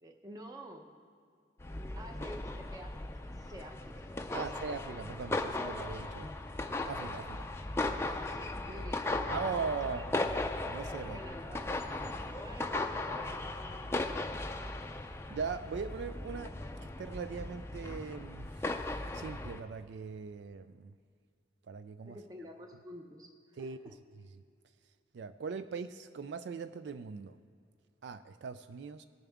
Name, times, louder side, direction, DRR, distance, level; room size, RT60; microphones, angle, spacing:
voice 1, 0.0-0.9 1.9-4.6 8.0-10.1 11.0-13.7 22.0-24.0, equal, 20° right, 3 dB, 0.8 m, -50 dB
sound 1, 1.6-19.6, left 2 dB, 15° left, 0.4 m, -37 dB
voice 2, 4.3-6.3 6.8-7.5 9.3-10.4 10.6-11.2 15.3-16.6 16.8-18.5 19.1-20.9 21.7-22.2 23.6-23.8 25.1-27.4 28.0-29.0, right 5 dB, 70° right, 11 dB, 0.3 m, -40 dB
19.0 x 6.9 x 3.6 m, 2.2 s
head